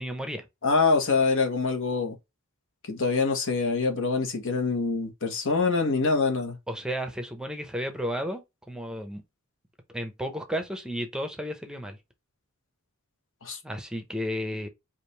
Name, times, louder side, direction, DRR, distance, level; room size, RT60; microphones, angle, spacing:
voice 1, 0.0-0.5 6.7-9.2 9.9-12.0 13.6-14.7, equal, 5° right, 0.7 m, -33 dB
voice 2, 0.6-2.1 2.9-6.6 13.4-13.6, left 4 dB, 65° left, 1.4 m, -25 dB
5.1 x 2.6 x 3.1 m
head